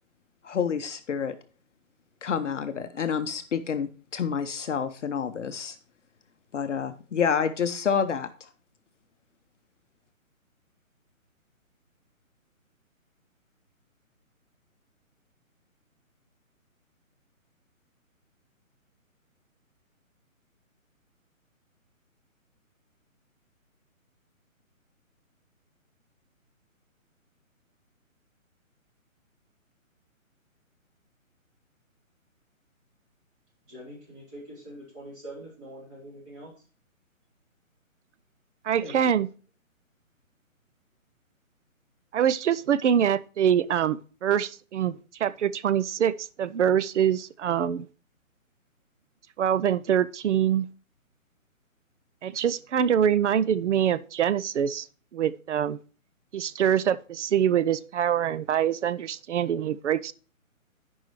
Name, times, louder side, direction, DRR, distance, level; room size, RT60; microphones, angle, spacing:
voice 1, 0.4-1.4 2.2-5.8 6.5-8.5, left 7 dB, 60° left, 0.7 m, -28 dB
voice 2, 33.7-36.5 38.8-39.1, equal, 20° right, 3.8 m, -43 dB
voice 3, 38.6-39.3 42.1-47.9 49.4-50.7 52.2-54.9 55.1-55.8 56.3-60.1, right 9 dB, 60° right, 0.5 m, -24 dB
12.5 x 5.4 x 3.1 m
hypercardioid pair, 155°, 41 cm